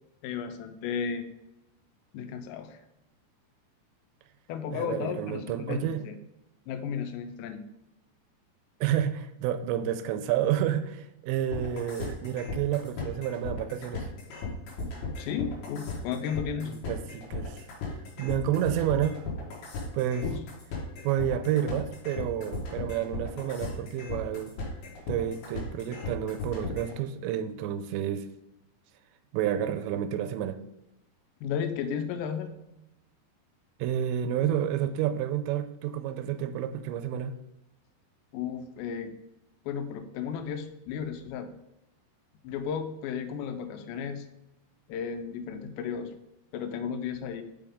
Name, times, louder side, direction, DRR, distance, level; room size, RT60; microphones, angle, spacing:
voice 1, 0.2-1.3 2.1-2.8 4.5-6.2 6.7-7.7 15.2-16.7 20.2-20.4 31.4-32.5 38.3-39.1 39.7-41.5 42.4-44.3 44.9-46.1 46.5-47.4, left 7 dB, 85° left, 8 dB, 2.8 m, -34 dB
voice 2, 4.7-6.0 8.8-14.1 16.7-17.7 18.2-19.3 19.9-20.3 21.0-24.5 25.1-28.3 29.3-30.6 33.8-37.4, right 10 dB, 90° right, 10 dB, 2.8 m, -30 dB
sound 1, 11.5-26.9, left 4 dB, 65° left, 3.2 m, -36 dB
6.8 x 5.6 x 3.5 m, 0.86 s
omnidirectional pair, 5.0 m